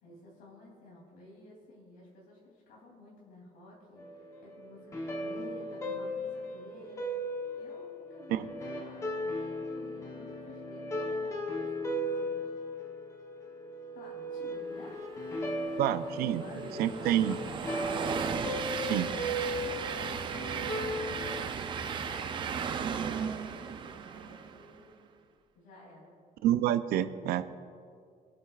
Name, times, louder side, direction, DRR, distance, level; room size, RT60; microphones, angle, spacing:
voice 1, 0.0-7.1 7.5-12.4 13.9-15.8 16.1-18.3 18.6-21.1 21.7-22.5 23.0-24.9 25.5-26.2, left 1 dB, 75° left, -3 dB, 3.0 m, -52 dB
sound 1, 4.0-21.4, equal, 20° left, 1.0 m, -37 dB
Train, 15.4-24.8, right 7 dB, 30° right, 0.5 m, -36 dB
voice 2, 15.8-16.4 16.8-17.4 18.9-19.1 26.4-27.4, right 12 dB, 85° right, 12 dB, 0.6 m, -28 dB
23.0 x 8.8 x 2.4 m, 2.3 s
cardioid pair, 175°, 16 cm